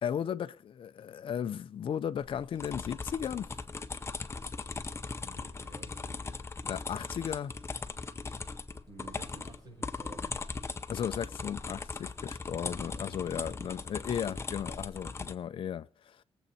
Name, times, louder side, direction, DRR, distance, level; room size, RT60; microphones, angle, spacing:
voice 1, 0.0-3.5 6.6-7.5 10.9-16.2, left 8 dB, 55° left, 0.5 m, -35 dB
sound 1, 2.2-15.4, left 4 dB, 25° left, 0.7 m, -39 dB
voice 2, 5.2-6.2 8.9-10.5, right 2 dB, 40° right, 5.7 m, -52 dB
21.0 x 8.0 x 4.2 m
wide cardioid pair, 130°, 10 cm